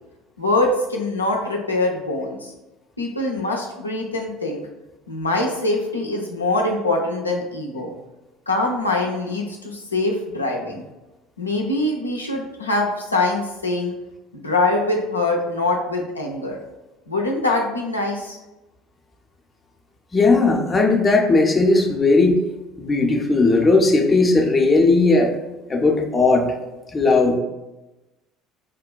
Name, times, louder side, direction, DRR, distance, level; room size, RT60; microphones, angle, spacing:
voice 1, 0.4-2.5 3.0-4.6 5.1-7.9 8.5-10.9 11.4-13.9 14.3-16.6 17.1-18.4, left 2 dB, 90° left, -1 dB, 0.3 m, -23 dB
voice 2, 20.1-22.4 22.8-25.3 25.7-26.5 26.9-27.4, left 3 dB, 25° left, 2 dB, 0.5 m, -17 dB
3.6 x 2.2 x 2.2 m, 1.0 s
figure-of-eight pair, 60°, 0 cm